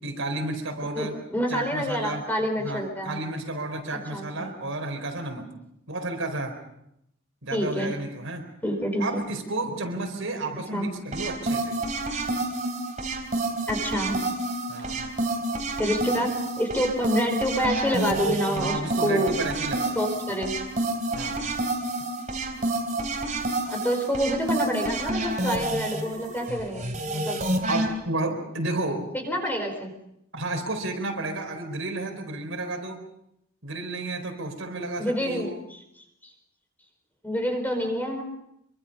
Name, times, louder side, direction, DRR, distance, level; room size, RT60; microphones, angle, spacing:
voice 1, 0.0-1.2 1.5-2.2 2.6-5.5 5.9-6.6 7.4-8.4 9.0-11.8 14.7-15.0 18.6-20.0 21.1-21.4 27.7-29.1 30.3-33.0 33.6-35.5, right 2 dB, 65° right, 4 dB, 4.4 m, -32 dB
voice 2, 0.9-3.2 3.9-4.5 7.5-8.0 8.6-9.2 10.7-10.9 13.7-14.2 15.8-19.3 19.9-20.5 22.6-22.7 23.6-27.4 29.1-29.9 35.0-35.5 37.2-38.2, equal, 10° left, 3 dB, 4.5 m, -27 dB
sound 1, 11.1-27.9, right 2 dB, 35° right, 3.8 m, -29 dB
26.0 x 24.5 x 5.4 m, 0.79 s
head